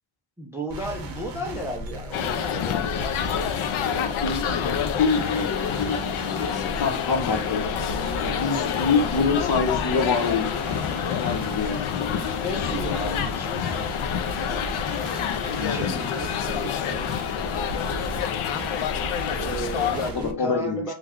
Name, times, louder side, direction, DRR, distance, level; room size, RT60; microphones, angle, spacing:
voice 1, 0.4-2.9 12.1-14.0 15.6-17.1 19.3-20.9, right 1 dB, 5° right, 0.3 m, -34 dB
sound 1, 0.7-20.3, right 2 dB, 45° right, 0.7 m, -35 dB
sound 2, 2.1-20.1, left 9 dB, 75° left, 0.6 m, -28 dB
voice 2, 3.8-7.6 8.2-10.5 11.2-11.9 15.6-16.0 19.8-20.9, left 5 dB, 50° left, 0.9 m, -26 dB
3.2 x 2.3 x 3.5 m
wide cardioid pair, 180°, 50 cm